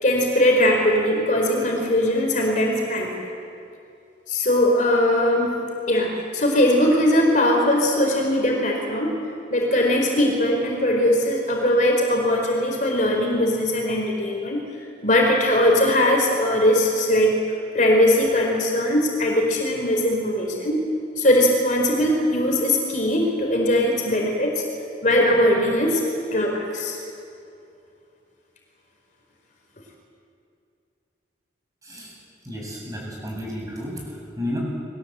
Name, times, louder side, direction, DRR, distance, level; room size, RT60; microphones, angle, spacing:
voice 1, 0.0-3.2 4.3-9.2 9.5-17.4 17.7-20.9 21.2-24.6 25.0-26.0 26.3-27.0, left 1 dB, 40° left, 1 dB, 4.1 m, -20 dB
voice 2, 31.8-32.1 32.4-34.6, left 1 dB, 20° right, -3 dB, 7.9 m, -32 dB
29.5 x 21.5 x 8.1 m, 2.6 s
head